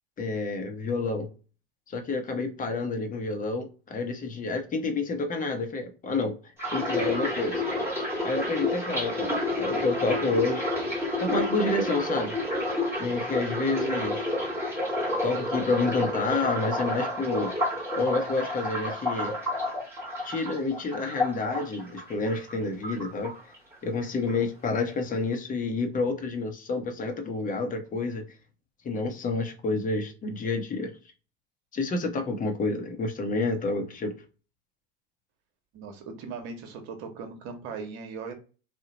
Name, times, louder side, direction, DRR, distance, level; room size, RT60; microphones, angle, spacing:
voice 1, 0.2-1.3 1.9-6.4 6.7-7.6 8.2-10.7 11.2-12.3 13.0-14.3 15.2-17.5 18.0-19.3 20.2-23.3 23.8-28.3 28.8-31.0 31.7-34.1, left 3 dB, 25° left, 0.7 m, -29 dB
sound 1, 6.6-22.5 22.8-23.7 24.0-24.4, left 1 dB, 5° right, 1.2 m, -30 dB
voice 2, 35.7-38.3, right 5 dB, 55° right, 0.9 m, -39 dB
2.8 x 2.1 x 2.7 m
hypercardioid pair, 85°, 32 cm